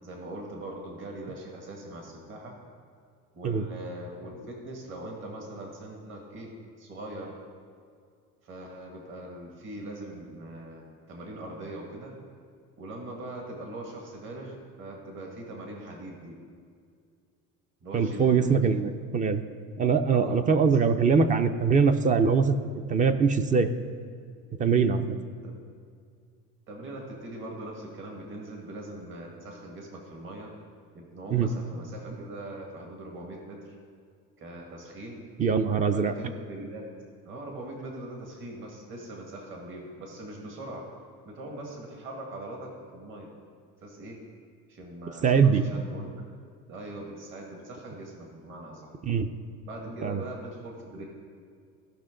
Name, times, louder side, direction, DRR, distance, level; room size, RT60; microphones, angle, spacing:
voice 1, 0.0-2.6 3.3-6.5 6.8-7.3 8.4-10.8 11.1-12.2 12.8-16.4 17.8-18.5 20.1-20.8 25.4-25.5 26.7-30.5 30.9-33.8 34.4-35.3 35.9-36.8 37.2-40.9 41.2-43.3 43.8-44.2 44.7-46.1 46.7-48.9 49.6-51.0, right 1 dB, 40° right, 0 dB, 1.9 m, -41 dB
voice 2, 17.9-19.4 19.8-22.5 22.9-23.7 24.6-25.2 31.3-31.5 35.4-36.1 45.2-45.6 49.1-49.3 50.0-50.2, right 5 dB, 25° right, 10 dB, 0.5 m, -22 dB
16.0 x 5.9 x 3.8 m, 2.2 s
cardioid pair, 135°, 30 cm